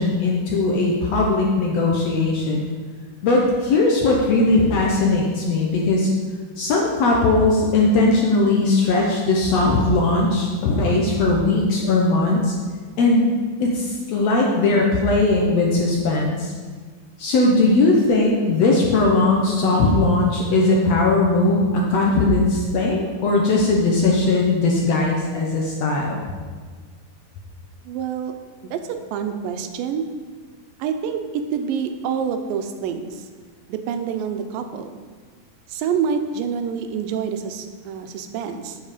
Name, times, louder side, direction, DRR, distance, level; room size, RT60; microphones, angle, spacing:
voice 1, 0.0-2.6 3.2-6.1 6.6-12.5 13.0-13.3 13.6-16.5 17.2-26.2, left 2 dB, 70° left, -1 dB, 1.7 m, -19 dB
voice 2, 27.8-28.3 28.6-30.1 30.8-33.3 33.7-34.9 35.7-38.8, right 7 dB, 90° right, 7 dB, 2.4 m, -27 dB
8.1 x 7.0 x 5.0 m, 1.5 s
omnidirectional pair, 3.9 m